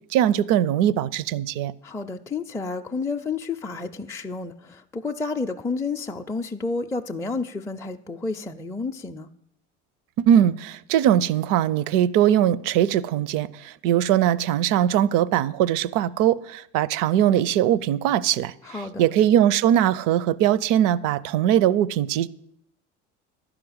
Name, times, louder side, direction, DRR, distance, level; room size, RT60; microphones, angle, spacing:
voice 1, 0.1-1.7 10.2-13.5 13.8-18.5 19.0-22.3, right 11 dB, 65° right, 0.5 m, -20 dB
voice 2, 1.8-9.3 18.6-19.1, left 4 dB, 10° left, 0.4 m, -30 dB
11.0 x 5.0 x 7.9 m
supercardioid pair, 80°, 35 cm